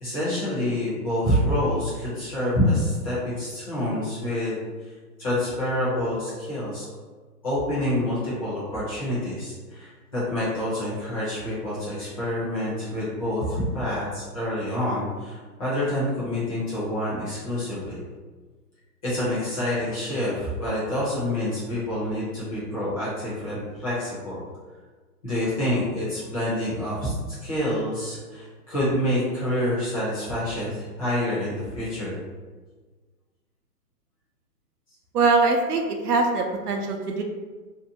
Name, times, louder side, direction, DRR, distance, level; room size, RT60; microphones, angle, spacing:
voice 1, 0.0-4.6 5.2-6.9 7.4-18.0 19.0-24.4 25.2-32.2, left 1 dB, 20° left, -9 dB, 0.6 m, -27 dB
voice 2, 35.1-37.2, right 3 dB, 70° right, 3 dB, 0.5 m, -22 dB
2.7 x 2.2 x 2.6 m, 1.4 s
hypercardioid pair, 155°, 49 cm